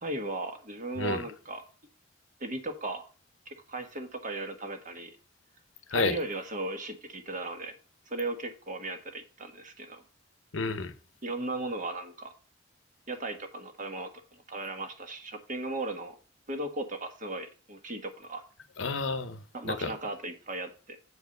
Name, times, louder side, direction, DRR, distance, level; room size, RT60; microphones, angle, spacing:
voice 1, 0.0-1.6 2.4-3.0 3.5-5.1 5.9-7.7 8.1-10.0 11.2-12.3 13.1-16.2 16.5-18.4 19.5-21.0, right 2 dB, 45° right, 1.5 m, -36 dB
voice 2, 10.5-10.9 18.8-19.9, left 4 dB, 75° left, 0.9 m, -30 dB
8.5 x 4.7 x 6.6 m
head